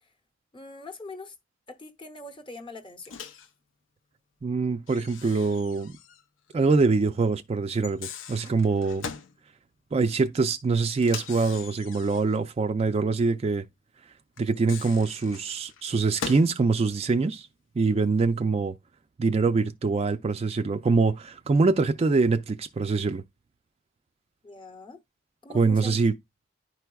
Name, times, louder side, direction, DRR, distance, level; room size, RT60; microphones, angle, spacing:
voice 1, 0.5-1.3 1.7-3.2 24.4-25.0 25.4-26.0, left 2 dB, 25° left, 0.8 m, -42 dB
Microwave oven, 3.1-3.5 4.9-6.2 6.5-6.6 7.7-9.4 11.0-12.4 14.4-16.6, left 6 dB, 90° left, 0.6 m, -40 dB
voice 2, 4.4-5.9 6.5-9.1 9.9-13.6 14.4-17.5 17.8-18.8 19.2-23.2 25.5-26.1, right 4 dB, 30° right, 0.3 m, -24 dB
10.5 x 4.6 x 2.3 m
head